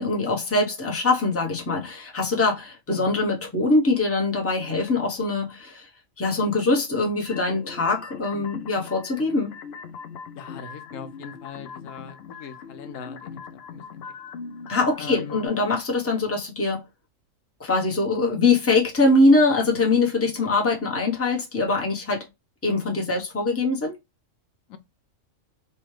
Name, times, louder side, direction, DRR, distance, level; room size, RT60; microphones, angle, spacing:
voice 1, 0.0-5.9 6.2-9.5 14.7-16.8 17.6-22.3 22.6-24.0, left 3 dB, 15° left, 0.8 m, -23 dB
sound 1, 7.3-15.5, left 6 dB, 60° left, 0.8 m, -41 dB
voice 2, 10.4-14.0 15.0-15.5 24.7-24.8, left 6 dB, 85° left, 1.0 m, -40 dB
4.4 x 2.3 x 3.1 m
omnidirectional pair, 1.3 m